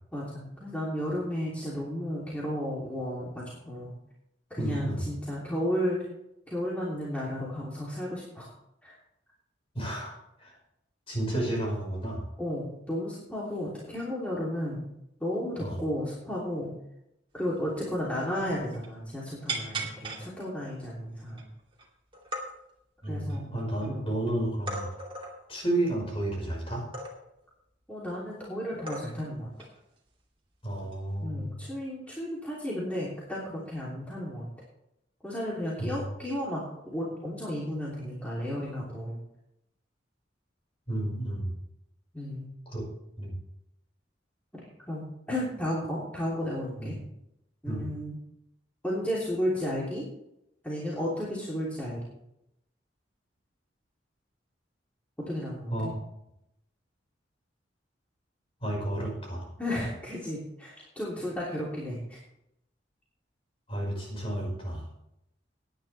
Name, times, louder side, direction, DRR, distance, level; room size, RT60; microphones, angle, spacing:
voice 1, 0.1-3.9 4.5-6.0 6.5-8.5 8.8-8.9 12.4-14.8 15.2-16.7 17.3-21.5 23.1-24.1 27.9-29.5 31.2-34.5 35.2-39.2 42.1-42.5 44.5-47.0 47.6-48.2 48.8-50.0 50.6-52.0 55.3-55.9 59.6-62.2, equal, 10° left, -7 dB, 3.0 m, -33 dB
voice 2, 4.6-5.0 9.7-10.5 11.1-12.3 15.6-15.8 23.0-24.9 25.5-26.9 30.6-31.6 35.8-36.0 40.9-41.5 42.7-42.9 43.2-43.4 46.8-46.9 47.7-47.8 55.7-56.0 58.6-59.5 63.7-64.8, right 1 dB, 30° left, -1 dB, 5.1 m, -31 dB
sound 1, 17.6-17.7 18.0-18.1 18.4-18.9 19.5-20.2 20.8-20.9 21.3-21.8 22.1-22.4 23.0-23.9 24.7-25.4 26.9-27.4 28.3-28.4 28.9-29.3 29.6-29.8 30.9-31.2, right 2 dB, 30° right, 2.7 m, -37 dB
18.0 x 10.5 x 3.4 m, 0.81 s
head